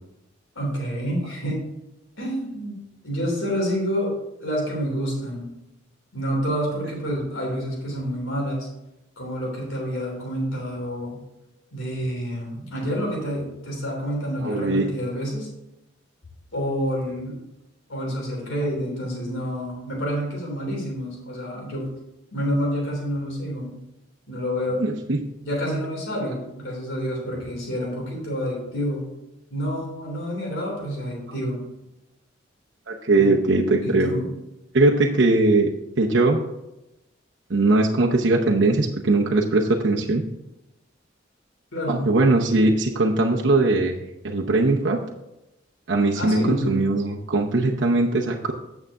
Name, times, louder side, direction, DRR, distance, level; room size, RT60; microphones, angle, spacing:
voice 1, 0.5-1.6 2.2-2.7 3.0-4.1 4.4-5.5 6.1-8.7 9.2-11.2 11.7-15.5 16.5-17.3 17.9-21.8 22.3-23.7 24.3-24.8 25.4-29.1 29.5-31.6 33.2-33.3 33.8-34.2 41.7-42.1 46.1-46.8, equal, 75° left, -2 dB, 3.4 m, -28 dB
voice 2, 14.4-14.9 24.8-25.2 32.9-34.1 34.7-36.4 37.5-40.2 41.9-44.0 44.2-45.0 45.9-48.5, right 2 dB, 65° right, -1 dB, 0.8 m, -20 dB
9.1 x 7.2 x 3.7 m, 0.91 s
head